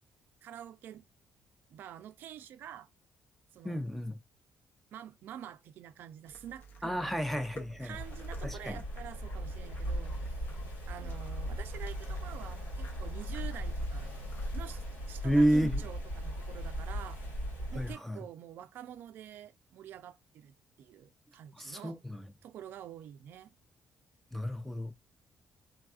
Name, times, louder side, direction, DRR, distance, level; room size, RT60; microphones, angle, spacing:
voice 1, 0.4-1.1 1.7-2.9 3.5-3.8 4.9-7.2 7.8-14.1 14.5-17.2 17.7-22.0 22.4-23.5, right 10 dB, 70° right, 0.3 m, -47 dB
voice 2, 3.6-4.2 6.8-8.0 8.4-8.8 15.2-15.8 17.7-18.2 21.6-22.3 24.3-24.9, equal, 5° left, 0.5 m, -31 dB
sound 1, 6.2-15.9, right 2 dB, 55° left, 1.0 m, -53 dB
sound 2, 7.9-17.9, equal, 90° left, 2.1 m, -38 dB
3.4 x 2.3 x 2.4 m
cardioid pair, 105°, 4 cm